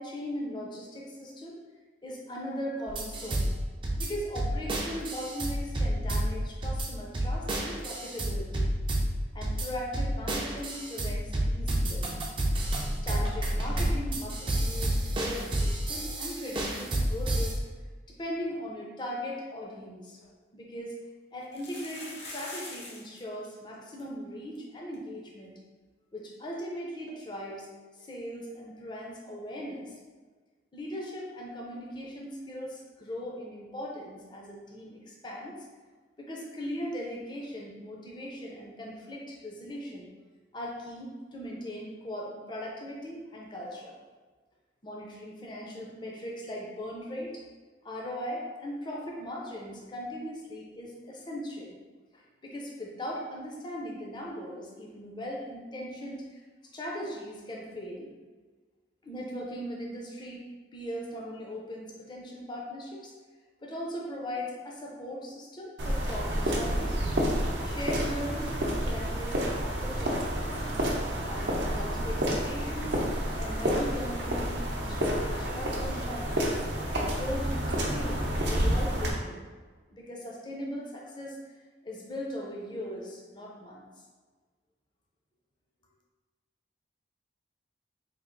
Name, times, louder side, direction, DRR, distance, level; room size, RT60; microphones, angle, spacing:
voice 1, 0.0-1.6 2.0-3.5 4.0-8.7 9.3-12.1 13.0-17.6 18.2-20.2 20.5-21.0 21.3-25.5 26.1-27.7 27.9-30.0 30.7-35.6 36.2-40.1 40.5-43.9 44.8-47.4 47.8-51.8 52.4-56.4 56.7-58.1 59.0-60.5 60.7-63.1 63.6-67.0 67.6-70.7 71.3-76.6 77.1-79.4 79.9-81.4 81.8-83.9, equal, 25° left, -2 dB, 0.5 m, -39 dB
sound 1, 2.9-17.5, right 1 dB, 25° right, 0.4 m, -30 dB
sound 2, 19.8-19.9 20.2-20.3 21.4-23.2 23.4-23.5 23.7-24.0 24.5-24.6 24.9-25.0 27.1-27.2, left 2 dB, 70° left, 0.8 m, -43 dB
kroki-po-chodniku, 65.8-79.1, equal, 75° right, 0.6 m, -29 dB
3.4 x 2.4 x 3.7 m, 1.4 s
head